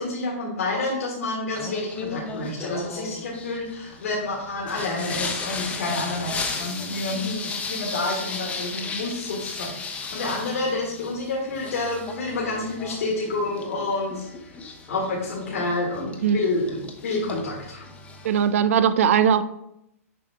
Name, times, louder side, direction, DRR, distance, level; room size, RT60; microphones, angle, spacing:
voice 1, 0.0-14.3 14.9-17.8, left 2 dB, 70° left, -3 dB, 1.6 m, -29 dB
Singing, 1.6-18.5, left 4 dB, 15° left, 0.9 m, -35 dB
voice 2, 18.2-19.4, right 8 dB, 65° right, 14 dB, 0.5 m, -19 dB
7.0 x 4.9 x 3.4 m, 0.82 s
hypercardioid pair, 130°, 8 cm